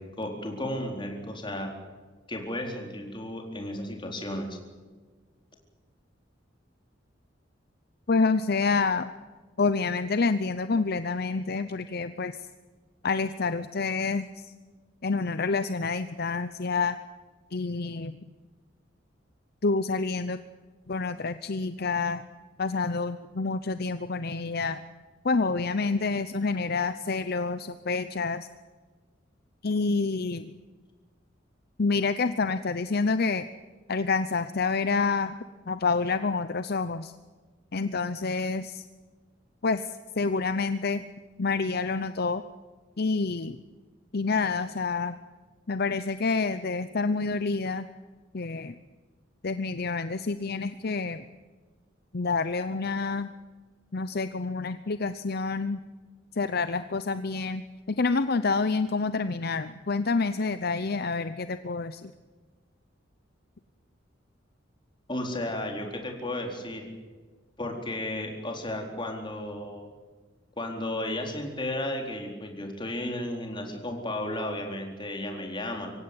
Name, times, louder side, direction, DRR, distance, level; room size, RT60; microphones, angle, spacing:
voice 1, 0.0-1.7 2.3-4.6 65.1-66.9 67.6-69.9 70.6-75.9, left 1 dB, 25° left, 2 dB, 4.2 m, -34 dB
voice 2, 8.1-9.1 9.6-12.5 13.0-14.5 15.0-17.0 17.5-18.1 19.6-20.4 20.9-22.2 22.6-24.8 25.2-28.5 29.6-30.5 31.8-33.4 33.9-35.3 35.7-37.1 37.7-38.9 39.6-41.0 41.4-42.4 43.0-43.6 44.1-45.2 45.7-47.9 48.3-48.8 49.4-51.2 52.1-53.3 53.9-55.8 56.3-57.6 57.9-62.1, left 4 dB, 55° left, 12 dB, 0.7 m, -28 dB
25.0 x 16.5 x 9.8 m, 1.4 s
head